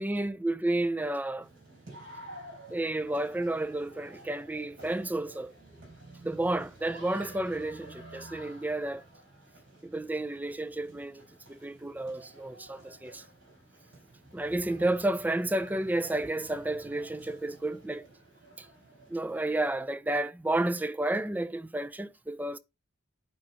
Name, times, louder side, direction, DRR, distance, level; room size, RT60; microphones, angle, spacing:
voice 1, 0.0-1.5 2.7-5.5 6.2-9.0 9.8-11.2 11.5-13.2 14.3-18.0 18.6-18.7 19.1-22.6, right 1 dB, 10° right, 0.4 m, -31 dB
sound 1, 1.4-19.6, right 1 dB, 55° right, 4.4 m, -51 dB
8.8 x 4.9 x 4.3 m
head